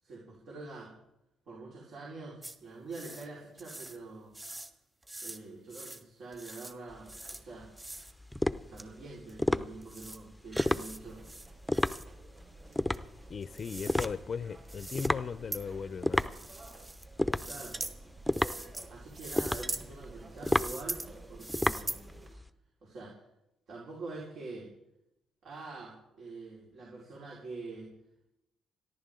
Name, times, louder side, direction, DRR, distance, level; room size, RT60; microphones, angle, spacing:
voice 1, 0.0-1.0 1.5-4.3 5.2-7.7 8.7-11.2 17.5-17.8 18.9-21.0 21.3-22.0 22.8-23.2 23.7-24.7 25.4-27.9, right 3 dB, 70° right, 4.7 m, -45 dB
sound 1, 2.4-2.5 2.9-3.3 3.6-4.0 4.3-4.7 5.0-5.4 5.7-6.0 6.3-6.7 7.1-7.4 7.8-8.1 8.8-8.9 9.3-9.4 9.8-10.2 10.5-11.0 11.2-12.0 12.9-14.1 14.7-15.1 15.5-15.6 16.1-17.0 17.3-17.9 18.3-18.9 19.2-19.8 20.4-21.1 21.4-22.0, right 1 dB, 20° right, 1.6 m, -42 dB
sound 2, 6.9-22.5, left 1 dB, 5° left, 0.7 m, -33 dB
sound 3, 11.0-22.3, right 2 dB, 40° right, 4.9 m, -53 dB
voice 2, 13.3-16.4, left 6 dB, 45° left, 0.6 m, -38 dB
28.5 x 11.5 x 3.8 m
cardioid pair, 90°, 0 cm